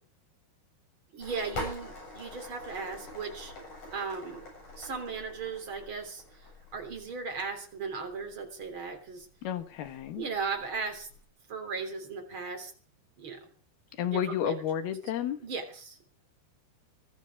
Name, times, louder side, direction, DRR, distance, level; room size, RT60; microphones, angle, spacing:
voice 1, 1.1-3.5 3.9-4.5 4.8-6.2 6.7-9.3 10.2-11.1 11.5-12.7 13.2-13.5 14.0-14.6 15.4-16.0, right 5 dB, 30° right, 3 dB, 3.7 m, -37 dB
sound 1, 1.2-11.3, left 1 dB, 40° left, 9.1 m, -45 dB
voice 2, 9.4-10.3 14.0-15.4, left 9 dB, 65° left, 8 dB, 3.2 m, -31 dB
21.5 x 13.5 x 4.8 m, 0.41 s
omnidirectional pair, 5.1 m